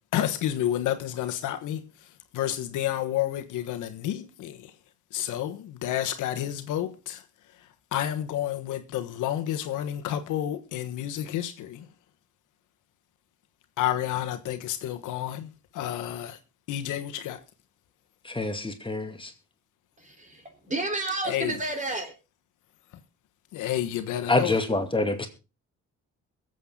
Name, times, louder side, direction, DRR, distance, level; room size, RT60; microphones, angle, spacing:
voice 1, 0.1-1.8 2.3-4.7 5.1-7.2 7.9-11.9 13.8-16.4 16.7-17.4 21.2-21.6 23.5-24.6, left 12 dB, 85° left, 1.4 m, -30 dB
voice 2, 18.3-19.3 24.3-25.3, left 2 dB, 15° left, 2.4 m, -26 dB
voice 3, 20.0-22.1, right 2 dB, 25° right, 4.0 m, -31 dB
22.0 x 8.2 x 3.8 m
cardioid pair, 90°, 30 cm